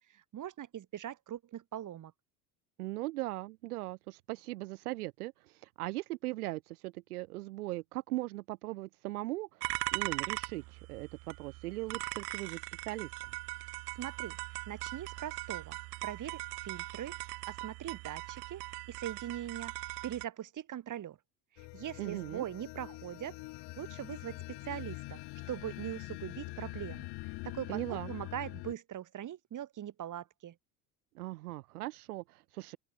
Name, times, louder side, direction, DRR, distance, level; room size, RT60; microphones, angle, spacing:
voice 1, 0.0-2.1 14.0-17.2 17.5-18.6 18.9-21.2 21.5-23.4 23.8-25.2 25.5-27.1 27.4-30.6, right 11 dB, 40° right, 2.6 m, -41 dB
voice 2, 2.8-13.1 22.0-22.4 27.7-28.1 31.1-32.8, right 19 dB, 75° right, 1.2 m, -39 dB
sound 1, 9.6-20.3, right 25 dB, 60° right, 1.3 m, -40 dB
sound 2, 21.6-28.7, left 24 dB, 60° left, 1.9 m, -44 dB
open air
hypercardioid pair, 70°, 45 cm